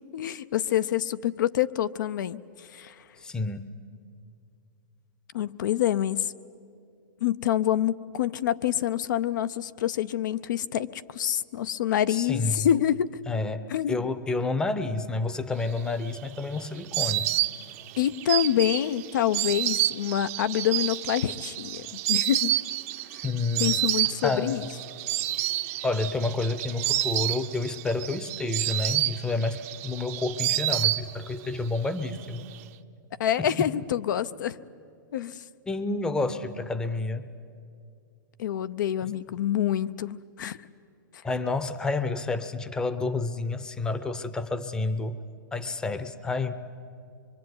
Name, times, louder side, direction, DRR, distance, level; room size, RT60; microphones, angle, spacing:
voice 1, 0.1-2.4 2.7-2.9 5.3-6.3 7.2-13.1 13.7-14.0 18.0-21.8 22.1-22.5 23.6-24.6 33.2-34.6 35.1-35.4 38.4-40.6, left 11 dB, 65° left, 13 dB, 0.7 m, -26 dB
voice 2, 3.2-3.7 12.1-12.7 13.3-17.3 23.2-23.8 24.2-24.6 25.8-32.4 33.4-33.7 35.7-37.3 41.2-45.2 45.5-46.5, left 3 dB, 5° left, 12 dB, 0.8 m, -29 dB
Insect, 15.8-31.5 31.7-32.6, right 16 dB, 45° right, 0.8 m, -29 dB
24.0 x 24.0 x 9.5 m, 2.4 s
hypercardioid pair, 155°, 11 cm